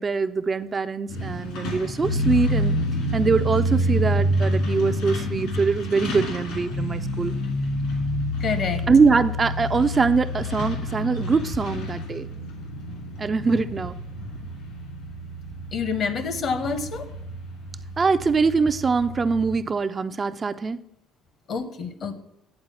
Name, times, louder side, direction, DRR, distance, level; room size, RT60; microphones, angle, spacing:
voice 1, 0.0-2.7 3.1-7.3 8.9-12.3 13.2-14.0 18.0-20.8, right 4 dB, 30° right, 10 dB, 0.4 m, -23 dB
Truck, 1.1-19.6, left 1 dB, 80° left, 2.5 m, -28 dB
voice 2, 8.4-8.8 15.7-17.1 21.5-22.1, left 5 dB, 55° left, 12 dB, 0.9 m, -27 dB
8.9 x 4.0 x 7.1 m, 0.76 s
supercardioid pair, 90°, 0 cm